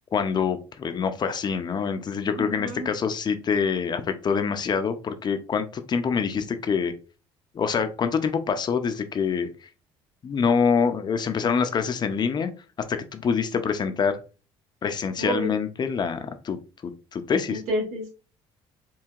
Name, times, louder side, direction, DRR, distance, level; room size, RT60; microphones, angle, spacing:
voice 1, 0.1-6.9 7.5-9.7 10.2-12.5 12.9-14.2 14.8-16.6 16.8-17.6, left 6 dB, 40° left, 9 dB, 0.6 m, -25 dB
voice 2, 2.4-2.9 15.2-15.5 17.5-18.1, right 1 dB, 75° right, 0 dB, 1.5 m, -29 dB
4.6 x 2.7 x 2.4 m, 0.33 s
supercardioid pair, 90°, 12 cm